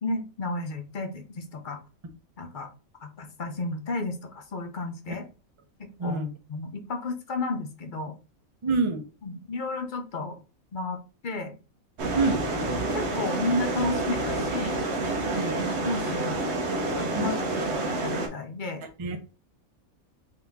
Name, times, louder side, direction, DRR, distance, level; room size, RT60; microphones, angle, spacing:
voice 1, 0.0-1.8 2.4-2.7 3.0-5.3 5.8-6.2 6.5-8.1 9.2-10.4 10.7-11.5 12.7-14.8 15.8-16.5 17.0-17.3 17.8-18.8, left 2 dB, 50° left, 5 dB, 0.6 m, -32 dB
voice 2, 6.0-6.3 8.6-9.0 12.2-12.4 15.3-15.6 17.1-17.3 19.0-19.4, right 3 dB, 35° right, 5 dB, 0.4 m, -26 dB
sound 1, 12.0-18.3, right 2 dB, 55° right, 1.0 m, -28 dB
3.9 x 2.8 x 3.5 m, 0.33 s
omnidirectional pair, 1.5 m